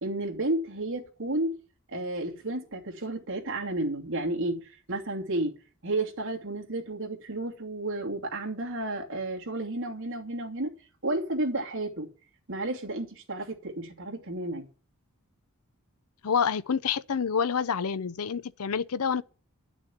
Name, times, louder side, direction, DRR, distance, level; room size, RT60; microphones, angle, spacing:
voice 1, 0.0-1.5 1.9-5.5 5.8-10.7 11.0-12.1 12.5-14.7, right 2 dB, 60° right, 2.7 m, -32 dB
voice 2, 16.2-19.2, left 6 dB, 80° left, 0.6 m, -28 dB
11.0 x 6.2 x 9.2 m
head